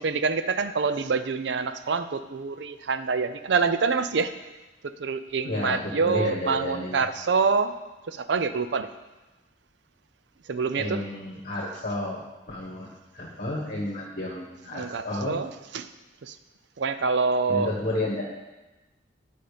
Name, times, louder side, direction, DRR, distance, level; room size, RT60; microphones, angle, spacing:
voice 1, 0.0-4.3 5.0-7.7 8.1-8.9 10.5-11.0 14.7-15.5 15.7-15.9 16.2-16.4 16.8-17.7, right 4 dB, 70° right, 12 dB, 0.5 m, -26 dB
voice 2, 5.4-7.0 10.8-15.4 17.5-18.2, left 1 dB, 50° left, -5 dB, 1.4 m, -31 dB
10.0 x 5.4 x 5.0 m, 1.1 s
head